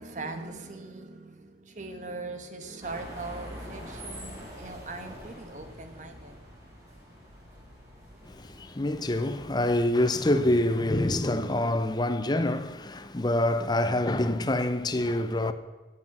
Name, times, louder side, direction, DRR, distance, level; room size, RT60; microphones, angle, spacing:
voice 1, 0.0-6.4, right 3 dB, 45° right, 1.2 m, -40 dB
sound 1, 2.8-9.7, equal, 20° right, 3.5 m, -45 dB
voice 2, 8.2-15.5, left 1 dB, 25° left, 0.6 m, -26 dB
15.5 x 7.9 x 6.0 m
head